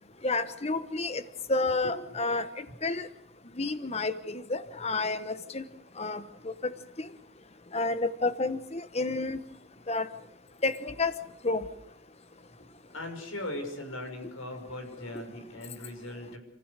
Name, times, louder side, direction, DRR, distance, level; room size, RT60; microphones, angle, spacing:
voice 1, 0.2-1.2 1.5-3.1 3.6-5.6 6.0-6.7 7.0-7.1 7.7-9.4 9.9-10.1 10.6-11.1 11.4-11.6, left 3 dB, 30° left, 12 dB, 1.1 m, -30 dB
voice 2, 1.6-2.2 12.6-16.4, left 1 dB, 85° left, 3 dB, 6.1 m, -40 dB
28.0 x 16.0 x 6.7 m, 0.77 s
head